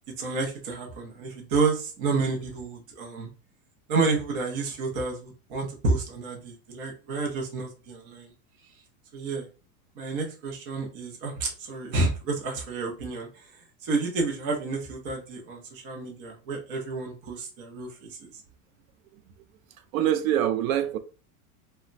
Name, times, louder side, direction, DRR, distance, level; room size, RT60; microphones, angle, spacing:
voice 1, 0.2-3.3 3.9-8.3 9.1-9.5 10.0-13.5 13.8-18.3, right 3 dB, 40° right, 0.7 m, -30 dB
voice 2, 19.9-21.0, right 11 dB, 75° right, 0.6 m, -24 dB
2.2 x 2.1 x 3.8 m
supercardioid pair, 175°, 41 cm